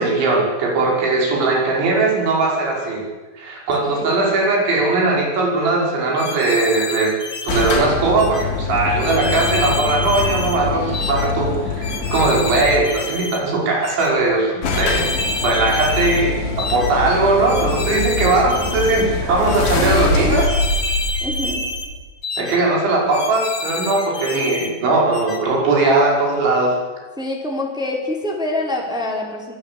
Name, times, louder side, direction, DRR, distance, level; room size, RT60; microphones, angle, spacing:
voice 1, 0.0-3.0 3.4-7.1 7.4-15.1 15.4-20.5 22.4-26.7, right 2 dB, 80° right, -1 dB, 8.0 m, -19 dB
voice 2, 3.9-4.3 17.8-18.2 19.8-20.4 21.2-21.7 27.2-29.6, left 1 dB, ahead, -1 dB, 4.2 m, -26 dB
sound 1, 6.2-7.8 8.2-8.5 9.0-10.6 10.9-11.3 11.8-13.4 13.8-14.1 14.6-16.3 16.6-16.9 17.5-19.1 19.5-19.8 20.3-21.9 22.2-22.6 23.1-24.7 25.1-25.4, left 2 dB, 45° left, 1.4 m, -28 dB
sound 2, 7.5-13.0 14.0-14.1 14.3-14.4 14.6-22.1, left 3 dB, 80° left, 6.0 m, -24 dB
24.0 x 18.5 x 8.6 m, 1.3 s
omnidirectional pair, 5.2 m